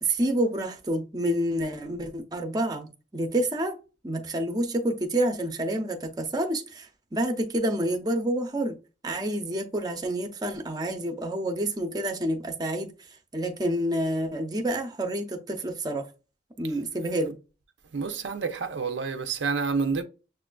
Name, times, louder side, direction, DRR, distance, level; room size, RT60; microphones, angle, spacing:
voice 1, 0.0-3.7 4.0-8.8 9.0-12.9 13.3-16.1 16.6-17.4, right 1 dB, 20° right, 0.5 m, -28 dB
voice 2, 17.9-20.0, right 5 dB, 80° right, 0.5 m, -29 dB
6.6 x 2.4 x 2.2 m
head